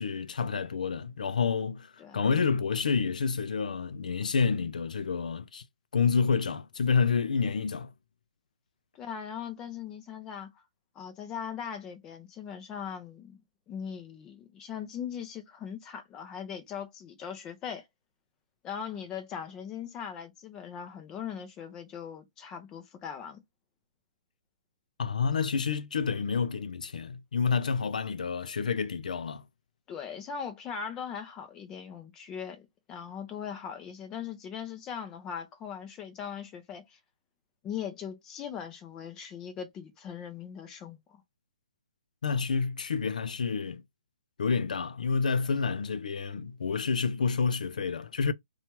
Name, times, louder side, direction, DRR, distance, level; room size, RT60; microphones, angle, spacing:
voice 1, 0.0-5.6 5.9-7.9 25.0-29.4 42.2-43.8 44.4-48.3, left 5 dB, 80° left, 0.4 m, -29 dB
voice 2, 8.9-10.5 11.0-13.4 13.7-17.9 18.6-23.4 29.9-37.0 37.6-41.2, left 7 dB, 15° left, 0.5 m, -40 dB
2.8 x 2.3 x 2.8 m
hypercardioid pair, 165°, 4 cm